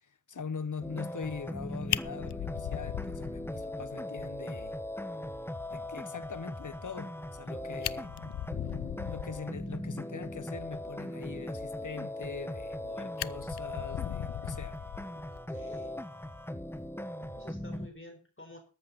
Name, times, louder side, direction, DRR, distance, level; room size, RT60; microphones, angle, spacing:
voice 1, 0.0-4.8 5.7-8.1 9.1-14.8, left 5 dB, 45° left, 1.1 m, -42 dB
sound 1, 0.8-17.9, left 1 dB, 5° left, 1.2 m, -39 dB
Fire, 1.5-1.6 1.9-3.8 4.2-4.3 4.7-4.8 5.1-5.2 7.3-7.4 7.7-9.5 12.3-12.8 13.2-15.4 16.7-16.9, left 11 dB, 70° left, 0.6 m, -37 dB
voice 2, 15.3-16.0 17.2-18.6, left 2 dB, 30° left, 4.2 m, -51 dB
13.5 x 11.0 x 4.1 m
wide cardioid pair, 65°, 41 cm